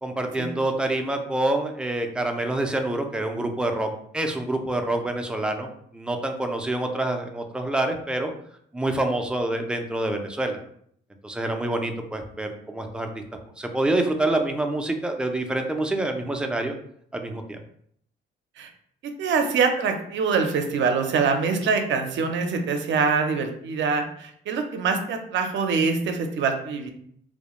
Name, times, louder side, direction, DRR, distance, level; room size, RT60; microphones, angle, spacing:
voice 1, 0.0-3.9 4.1-8.3 8.7-10.6 11.2-13.1 13.6-16.7 17.1-17.6, right 1 dB, 5° right, 4 dB, 0.3 m, -26 dB
voice 2, 19.2-26.9, right 5 dB, 70° right, 5 dB, 0.5 m, -24 dB
2.3 x 2.1 x 2.9 m, 0.67 s
cardioid pair, 90°, 20 cm